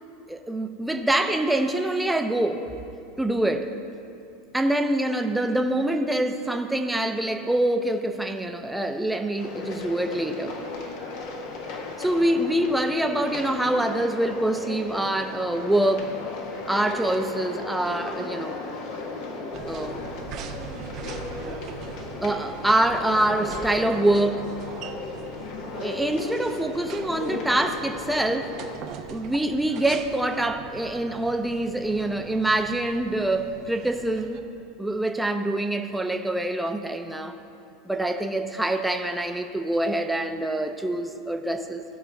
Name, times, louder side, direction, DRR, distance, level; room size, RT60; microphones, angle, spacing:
voice 1, 0.3-2.7 3.2-3.7 4.5-10.6 12.0-16.1 16.7-18.6 19.4-20.0 21.5-21.6 22.2-24.5 25.7-28.6 29.1-34.4 34.8-37.3 37.8-41.8, right 1 dB, 5° right, 6 dB, 0.8 m, -25 dB
sound 1, 9.4-28.8, left 3 dB, 55° left, 1.4 m, -36 dB
sound 2, 19.5-34.4, right 7 dB, 45° right, 0.7 m, -42 dB
16.5 x 5.8 x 3.5 m, 2.7 s
hypercardioid pair, 85°, 0 cm